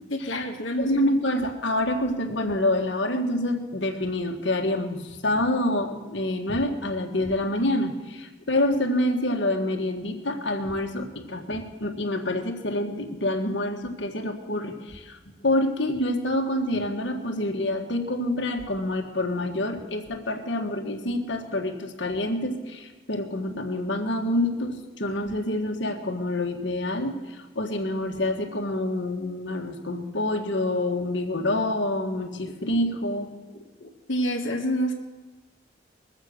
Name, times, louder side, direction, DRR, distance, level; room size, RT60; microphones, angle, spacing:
voice 1, 0.1-1.1 34.1-34.9, equal, 80° left, 0 dB, 1.3 m, -27 dB
voice 2, 0.8-15.2 15.4-33.3 33.8-33.9, left 1 dB, 65° left, 3 dB, 1.5 m, -27 dB
21.5 x 7.4 x 6.4 m, 1.2 s
head